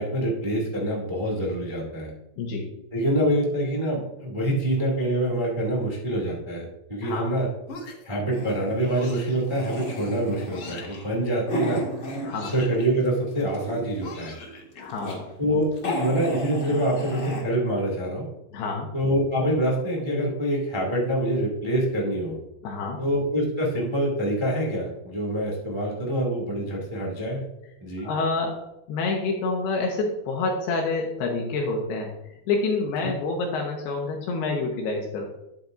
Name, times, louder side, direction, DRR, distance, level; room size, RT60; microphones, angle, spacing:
voice 1, 0.0-2.1 2.9-7.5 8.0-11.8 12.5-14.3 15.4-18.3 18.9-22.3 23.0-27.4 27.8-28.1, right 1 dB, 30° right, -2 dB, 0.5 m, -25 dB
voice 2, 2.4-2.7 7.0-7.4 12.2-12.5 14.8-15.2 18.5-18.9 22.6-23.0 28.0-28.6 28.9-35.3, left 3 dB, 75° left, 1 dB, 2.9 m, -28 dB
sound 1, 7.7-8.2 9.0-9.4 10.5-11.0 12.3-12.8 14.0-14.8, left 2 dB, 55° left, 1.6 m, -41 dB
sound 2, 8.3-12.9 13.3-14.1 14.6-15.2 15.5-15.6 15.8-17.4, equal, 40° left, 1.0 m, -32 dB
10.5 x 8.4 x 2.6 m, 0.92 s
omnidirectional pair, 4.8 m